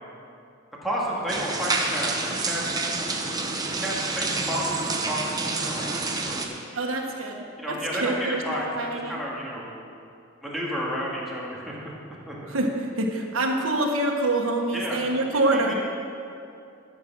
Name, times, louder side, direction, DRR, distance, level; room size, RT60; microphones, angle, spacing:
voice 1, 0.8-2.7 3.8-5.9 6.2-6.4 7.6-9.7 10.4-11.9 12.3-12.4 14.7-15.0 15.5-15.7, equal, ahead, -6 dB, 2.1 m, -31 dB
sound 1, 1.3-6.4, right 3 dB, 20° right, 0.9 m, -28 dB
voice 2, 6.7-9.2 12.5-15.7, right 2 dB, 85° right, 1 dB, 1.4 m, -26 dB
12.5 x 8.3 x 6.2 m, 2.5 s
head